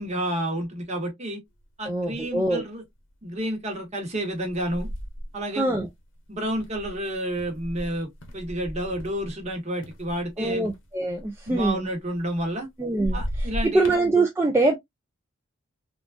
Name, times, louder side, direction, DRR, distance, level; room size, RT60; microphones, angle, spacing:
voice 1, 0.0-1.4 1.8-2.8 3.2-4.9 5.3-5.8 6.3-10.8 11.5-12.7 13.1-13.9, right 1 dB, 35° right, 1.1 m, -30 dB
sound 1, 1.6-1.7 2.1-2.6 3.1-3.4 4.3-9.5 9.8-12.6 12.9-14.1, equal, 60° left, 0.8 m, -36 dB
voice 2, 1.9-2.6 5.6-5.9 10.4-11.9 12.8-14.8, right 2 dB, 10° right, 0.3 m, -24 dB
3.6 x 2.4 x 2.4 m
head